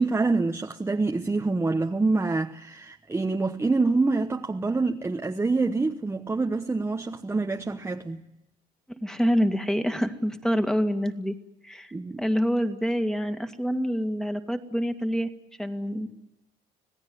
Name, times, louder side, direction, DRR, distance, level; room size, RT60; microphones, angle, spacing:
voice 1, 0.0-8.2 11.9-12.2, right 3 dB, 15° right, 1.0 m, -26 dB
voice 2, 8.9-11.4 11.6-11.9 12.2-15.3 15.6-16.1, equal, 5° left, 2.0 m, -26 dB
26.5 x 17.5 x 9.5 m
cardioid pair, 110°, 17 cm